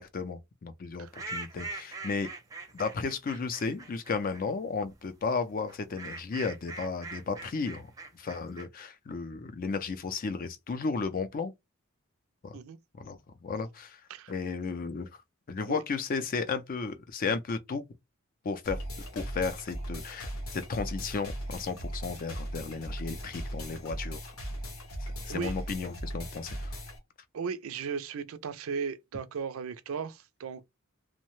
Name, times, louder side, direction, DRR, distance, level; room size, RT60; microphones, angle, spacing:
voice 1, 0.0-2.3 2.7-11.5 12.4-12.6 13.0-14.0 14.3-15.1 15.5-17.8 18.4-18.8 19.1-24.3 25.0-26.8, left 4 dB, 40° left, 0.4 m, -34 dB
sound 1, 1.1-4.4 5.7-8.7, right 3 dB, 15° right, 0.5 m, -42 dB
sound 2, 18.6-27.0, equal, 90° left, 0.9 m, -38 dB
voice 2, 27.3-30.7, right 6 dB, 75° right, 0.4 m, -36 dB
2.7 x 2.1 x 3.0 m
head